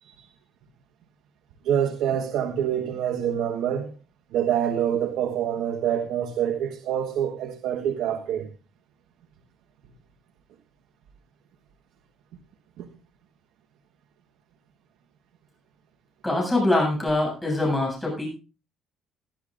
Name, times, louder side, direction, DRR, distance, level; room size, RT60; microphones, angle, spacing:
voice 1, 1.6-3.9 4.3-8.5 12.8-12.9, right 9 dB, 75° right, 1.4 m, -26 dB
voice 2, 16.2-18.3, left 2 dB, 10° left, 7.5 m, -23 dB
21.0 x 11.5 x 2.6 m
cardioid pair, 145°, 0 cm